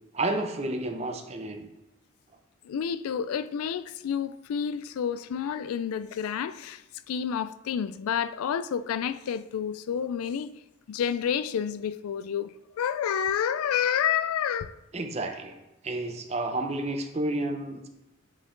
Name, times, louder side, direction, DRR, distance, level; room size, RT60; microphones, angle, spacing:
voice 1, 0.1-1.7 14.9-15.6 15.8-17.9, right 2 dB, 30° right, 0.6 m, -31 dB
voice 2, 2.6-10.5 10.9-14.7, left 8 dB, 85° left, 0.3 m, -29 dB
8.3 x 4.2 x 3.8 m
head